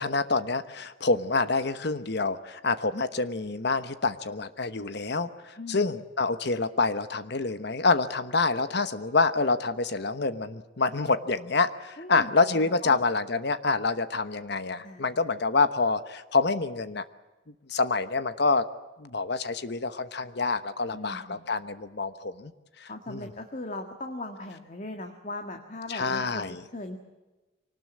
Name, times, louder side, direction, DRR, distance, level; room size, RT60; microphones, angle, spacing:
voice 1, 0.0-17.0 17.7-18.7 19.0-22.5 22.8-23.3 25.9-26.6, left 3 dB, 55° left, 12 dB, 1.1 m, -27 dB
voice 2, 5.6-5.9 12.0-13.0 14.8-15.1 20.9-21.5 22.9-26.4 26.7-27.0, left 2 dB, 40° left, 5 dB, 1.8 m, -39 dB
24.5 x 19.0 x 8.4 m, 1.1 s
head